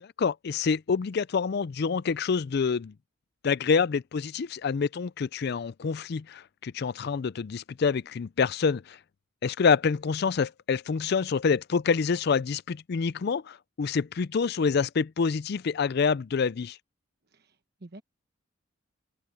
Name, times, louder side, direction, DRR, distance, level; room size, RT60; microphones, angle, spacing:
voice 1, 0.0-2.9 3.4-9.0 9.4-16.8, left 5 dB, 50° left, 0.4 m, -27 dB
voice 2, 17.3-18.0, right 2 dB, 50° right, 1.1 m, -49 dB
open air
head